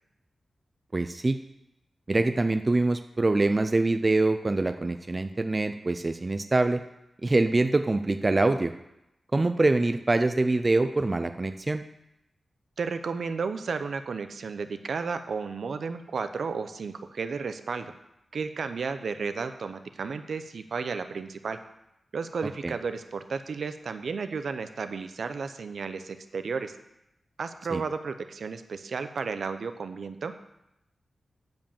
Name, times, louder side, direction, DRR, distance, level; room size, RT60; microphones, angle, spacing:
voice 1, 0.9-1.4 2.1-6.8 7.2-8.7 9.3-11.8 22.6-22.7 27.7-27.8, right 2 dB, 25° right, 8 dB, 0.4 m, -24 dB
voice 2, 12.8-17.9 18.3-21.6 22.1-26.7 27.4-30.3, right 5 dB, 65° right, 9 dB, 0.6 m, -33 dB
9.3 x 5.3 x 7.0 m, 0.86 s
wide cardioid pair, 155°, 0 cm